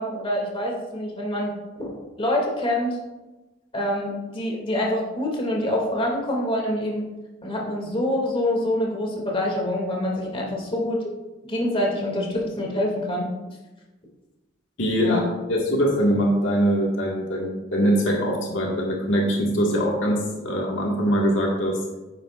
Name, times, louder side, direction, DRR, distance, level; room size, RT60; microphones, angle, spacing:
voice 1, 0.0-1.9 2.2-3.0 3.7-7.0 7.4-11.0 11.4-13.3 15.0-15.2, left 1 dB, 30° left, -2 dB, 2.5 m, -26 dB
voice 2, 14.8-15.2 15.5-21.8, equal, 80° left, -1 dB, 1.8 m, -22 dB
11.0 x 10.0 x 2.5 m, 1.1 s
head